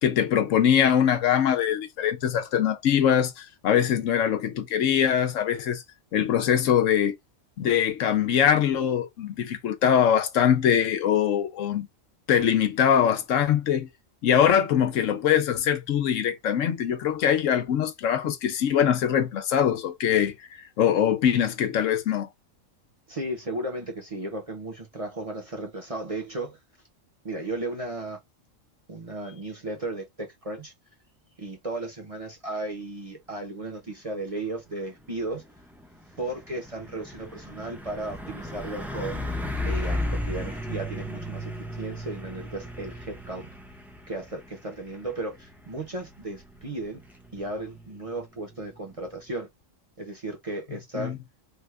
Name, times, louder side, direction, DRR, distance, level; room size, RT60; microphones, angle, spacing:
voice 1, 0.0-5.8 6.1-7.2 7.6-11.9 12.3-13.9 14.2-20.3 20.8-22.3 51.0-51.2, left 9 dB, 75° left, 1.0 m, -22 dB
voice 2, 23.1-26.6 27.2-28.2 28.9-30.7 31.4-35.4 36.2-39.4 39.6-41.5 41.8-43.5 44.1-47.0 47.3-49.5 50.0-51.2, right 2 dB, 35° right, 0.7 m, -35 dB
Truck, 35.0-49.3, left 1 dB, ahead, 0.4 m, -36 dB
3.4 x 2.2 x 3.3 m
omnidirectional pair, 1.4 m